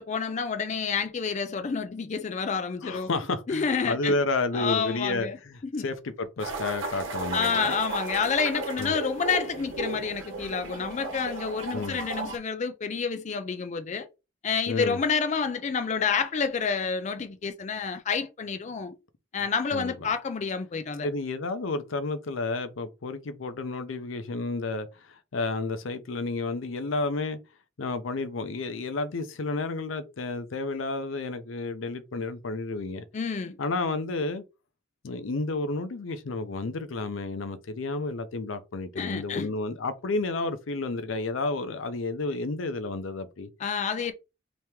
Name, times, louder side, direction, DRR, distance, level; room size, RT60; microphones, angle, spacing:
voice 1, 0.0-3.1 3.5-4.2 4.5-5.4 5.6-5.8 7.3-14.1 14.4-18.9 19.3-21.1 33.1-33.6 39.0-39.5 43.6-44.1, left 5 dB, 35° left, 0.4 m, -29 dB
voice 2, 2.8-7.7 8.8-8.9 11.7-12.0 14.7-15.0 19.7-19.9 21.0-27.4 27.8-33.0 33.6-34.4 35.0-43.5, left 3 dB, 85° left, 0.6 m, -31 dB
sound 1, 6.4-12.4, right 3 dB, 80° right, 1.0 m, -35 dB
3.0 x 2.9 x 3.4 m
head